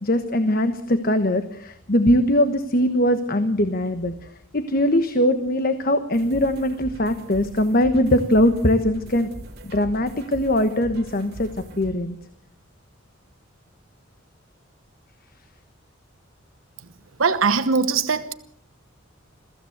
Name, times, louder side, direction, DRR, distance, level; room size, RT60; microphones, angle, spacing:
voice 1, 0.0-9.3 9.6-11.5 11.8-12.2, left 1 dB, 45° left, 1.2 m, -21 dB
sound 1, 6.1-11.9, right 1 dB, 50° right, 3.1 m, -41 dB
voice 2, 17.2-18.3, right 5 dB, 90° right, 1.0 m, -21 dB
22.5 x 15.0 x 8.0 m
head